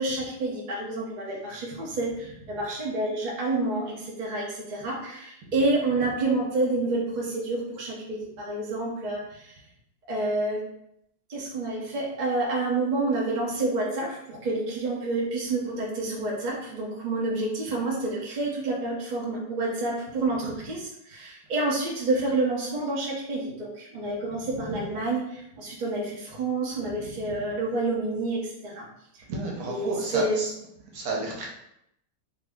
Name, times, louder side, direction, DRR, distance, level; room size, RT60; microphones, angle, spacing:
voice 1, 0.0-9.5 10.1-10.6 11.3-28.9 29.7-30.5, right 2 dB, 90° right, -3 dB, 0.4 m, -29 dB
voice 2, 29.3-30.5 30.9-31.5, right 2 dB, 60° right, -2 dB, 1.1 m, -31 dB
2.8 x 2.7 x 3.4 m, 0.78 s
omnidirectional pair, 2.0 m